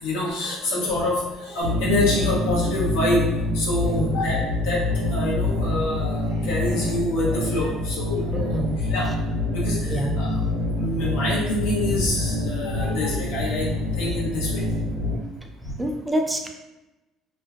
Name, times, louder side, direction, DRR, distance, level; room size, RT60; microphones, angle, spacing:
voice 1, 0.0-3.3 3.5-4.4 4.6-4.8 5.1-8.5 8.9-10.3 10.7-13.7 14.0-14.6, left 2 dB, 90° left, -5 dB, 0.8 m, -26 dB
sound 1, 1.6-15.2, left 2 dB, 90° right, 0.6 m, -26 dB
voice 2, 3.8-4.2 8.3-8.8 9.8-10.2 15.8-16.5, right 1 dB, 15° right, 3 dB, 0.4 m, -27 dB
2.5 x 2.1 x 2.4 m, 1.0 s
supercardioid pair, 90°, 0 cm